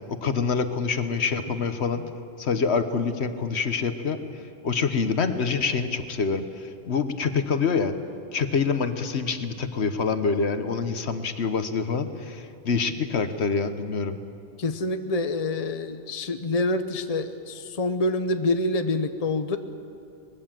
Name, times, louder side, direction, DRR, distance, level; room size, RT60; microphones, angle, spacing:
voice 1, 0.2-2.0 2.4-7.9 8.3-14.2, left 5 dB, 70° left, 9 dB, 1.4 m, -26 dB
voice 2, 14.6-19.6, left 2 dB, 35° left, 8 dB, 0.9 m, -26 dB
23.5 x 20.0 x 7.6 m, 2.5 s
omnidirectional pair, 1.2 m